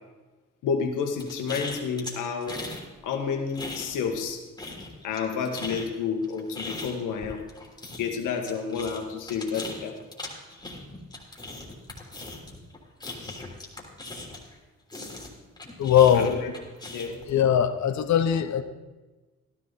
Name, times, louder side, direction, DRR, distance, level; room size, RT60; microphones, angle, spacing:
voice 1, 0.6-2.6 3.0-4.4 5.0-7.4 8.0-10.0 16.2-16.5 16.9-17.2, left 6 dB, 90° left, 4 dB, 1.8 m, -30 dB
sound 1, 1.2-2.8 3.1-4.3 4.6-14.6 14.9-17.3, left 2 dB, 15° left, 3.3 m, -39 dB
voice 2, 15.8-16.3 17.3-18.6, left 9 dB, 65° left, 10 dB, 1.1 m, -20 dB
14.0 x 12.0 x 4.2 m, 1.2 s
cardioid pair, 90°, 30 cm